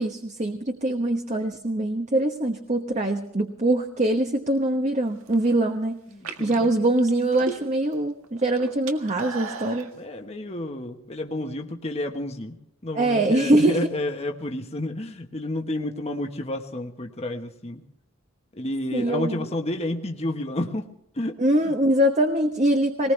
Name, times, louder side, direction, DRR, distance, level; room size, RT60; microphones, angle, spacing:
voice 1, 0.0-6.0 6.4-9.9 12.9-13.9 18.9-19.5 21.4-23.1, right 1 dB, 35° right, 4 dB, 1.1 m, -23 dB
sound 1, 5.1-5.5 6.1-7.9 8.2-9.9, right 4 dB, 85° right, 1.7 m, -36 dB
voice 2, 6.1-6.7 9.9-12.5 12.8-17.8 18.5-20.9 21.2-21.4 21.7-21.8, left 1 dB, 30° left, 4 dB, 1.2 m, -30 dB
20.0 x 19.5 x 3.3 m, 0.75 s
head